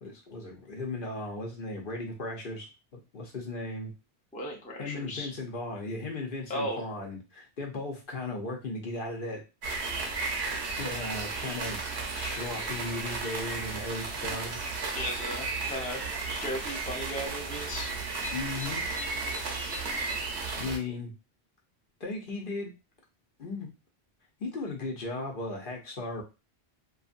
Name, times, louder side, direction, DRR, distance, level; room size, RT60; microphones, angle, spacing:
voice 1, 0.0-2.7 2.9-3.9 4.8-9.4 10.8-11.8 12.1-14.7 18.3-18.8 20.6-21.1 22.0-22.7 23.4-23.7 24.4-26.2, left 2 dB, 60° left, 1 dB, 0.8 m, -36 dB
voice 2, 4.3-5.3 6.5-6.8 14.9-16.0 16.4-17.9, equal, 10° left, -1 dB, 0.5 m, -35 dB
sound 1, 9.6-20.8, right 3 dB, 80° right, 1.0 m, -34 dB
2.6 x 2.5 x 2.4 m, 0.28 s
omnidirectional pair, 1.1 m